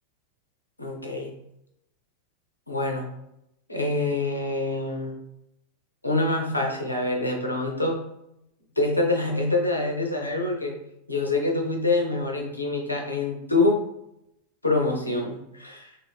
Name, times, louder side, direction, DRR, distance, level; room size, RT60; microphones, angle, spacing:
voice 1, 0.8-1.3 2.7-3.1 3.7-5.2 6.0-7.9 8.8-10.7 11.1-13.8 14.6-15.9, left 2 dB, 85° left, 1 dB, 0.6 m, -25 dB
2.6 x 2.5 x 3.4 m, 0.83 s
figure-of-eight pair, 90°, 0 cm